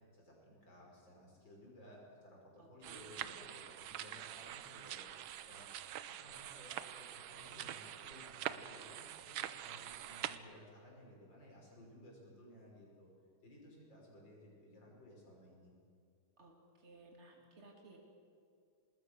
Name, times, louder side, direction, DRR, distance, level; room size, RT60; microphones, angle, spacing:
voice 1, 0.1-5.0 5.5-5.7 6.0-13.1 13.4-15.7, equal, 55° left, -2 dB, 6.5 m, -58 dB
voice 2, 2.6-3.3 16.4-18.0, right 2 dB, 30° right, 0 dB, 3.5 m, -59 dB
sound 1, 2.8-10.4, right 11 dB, 75° right, 1.6 m, -45 dB
26.5 x 20.0 x 6.6 m, 2.3 s
omnidirectional pair, 2.4 m